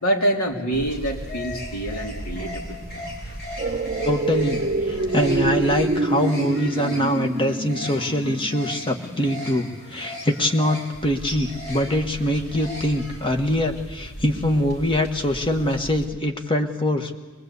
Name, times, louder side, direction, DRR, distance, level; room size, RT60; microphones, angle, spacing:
voice 1, 0.0-2.7, right 1 dB, 90° left, 0 dB, 3.1 m, -25 dB
sound 1, 0.7-16.0, equal, 50° left, 5.0 m, -36 dB
sound 2, 3.6-9.7 10.1-10.2, right 2 dB, 40° right, 0.7 m, -26 dB
voice 2, 4.0-17.2, left 1 dB, 25° left, 5 dB, 1.4 m, -23 dB
22.0 x 22.0 x 8.2 m, 1.4 s
head